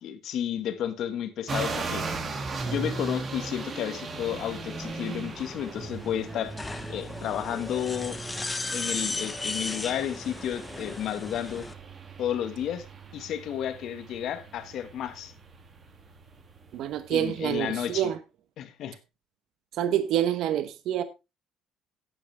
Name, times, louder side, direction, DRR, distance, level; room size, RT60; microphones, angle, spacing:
voice 1, 0.0-2.1 2.6-6.5 6.9-8.2 8.7-11.6 12.2-12.9 13.1-15.3 17.1-18.1 18.6-19.0, left 10 dB, 55° left, 1.6 m, -32 dB
sound 1, 1.5-18.0, right 3 dB, 30° right, 1.9 m, -38 dB
sound 2, 4.1-11.7, left 2 dB, 15° left, 1.1 m, -37 dB
voice 2, 16.7-18.2 19.8-21.0, right 11 dB, 65° right, 1.0 m, -27 dB
12.0 x 10.0 x 3.4 m
cardioid pair, 150°, 0 cm